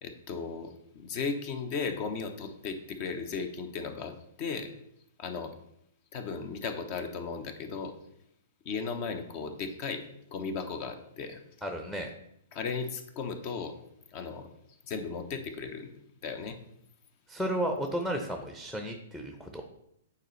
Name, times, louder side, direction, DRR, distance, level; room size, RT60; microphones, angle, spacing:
voice 1, 0.0-4.7 5.2-5.5 6.1-7.9 8.6-10.0 10.3-11.4 12.5-13.8 14.1-14.5 14.9-15.9 16.2-16.6, left 5 dB, 40° left, 8 dB, 0.9 m, -36 dB
voice 2, 11.6-12.1 17.3-19.6, right 1 dB, 5° left, 4 dB, 0.8 m, -33 dB
9.1 x 4.1 x 3.2 m, 0.76 s
figure-of-eight pair, 110°, 0 cm